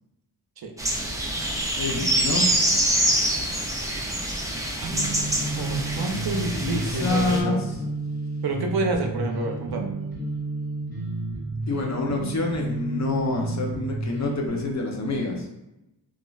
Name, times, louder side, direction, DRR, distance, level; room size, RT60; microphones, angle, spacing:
sound 1, 0.8-7.4, right 1 dB, 10° right, 0.4 m, -25 dB
voice 1, 1.8-2.5 6.6-7.7 11.7-15.5, left 3 dB, 45° left, 1 dB, 0.5 m, -27 dB
sound 2, 4.9-14.5, right 2 dB, 65° left, 1.1 m, -31 dB
voice 2, 5.6-7.6 8.4-9.9, right 3 dB, 65° right, 3 dB, 0.5 m, -28 dB
3.1 x 2.4 x 2.3 m, 0.90 s
wide cardioid pair, 105°, 40 cm